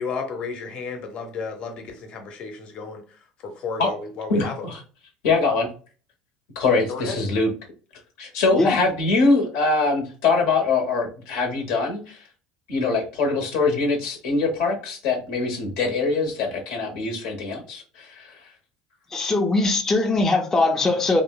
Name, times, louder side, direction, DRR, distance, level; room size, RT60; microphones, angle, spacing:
voice 1, 0.0-3.0 3.4-4.6 6.9-7.2, left 5 dB, 50° left, 0.7 m, -32 dB
voice 2, 4.3-4.8 5.2-5.7 6.5-7.5 8.2-12.3 12.7-18.4, left 3 dB, 80° left, 0.8 m, -23 dB
voice 3, 19.1-21.2, left 2 dB, 20° left, 0.4 m, -21 dB
2.8 x 2.0 x 2.2 m
supercardioid pair, 95°, 2 cm